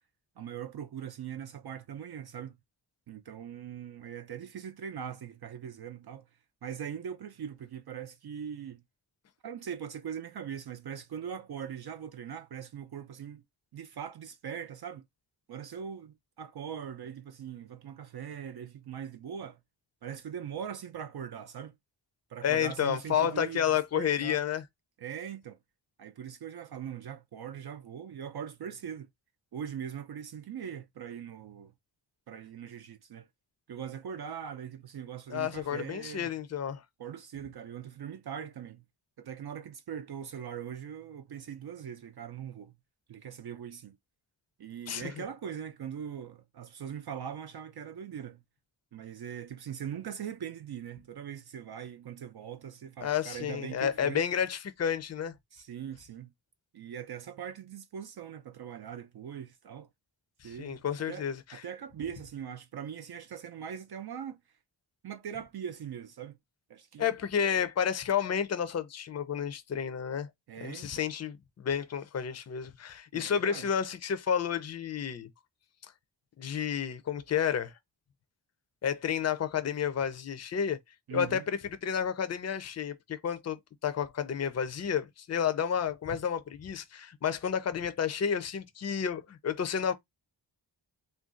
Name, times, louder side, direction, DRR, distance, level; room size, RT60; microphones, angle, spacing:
voice 1, 0.4-2.6 3.1-6.3 6.6-8.8 9.4-13.4 13.7-15.0 15.5-19.6 20.0-21.7 22.3-23.7 23.9-24.4 25.0-25.6 26.0-29.1 29.5-31.7 32.3-33.3 33.7-36.3 37.0-38.8 39.2-42.8 43.1-44.0 44.6-48.4 48.9-54.3 55.5-56.3 56.7-59.9 60.4-64.4 65.0-66.4 66.7-67.1 70.5-71.0 73.1-73.7 81.1-81.4, right 8 dB, 55° right, 0.5 m, -41 dB
voice 2, 22.4-24.6 35.3-36.8 44.9-45.2 53.0-55.3 60.4-61.6 67.0-70.3 70.6-75.3 76.4-77.7 78.8-80.8 81.1-89.9, left 8 dB, 35° left, 0.5 m, -31 dB
2.5 x 2.2 x 3.7 m
wide cardioid pair, 75°, 47 cm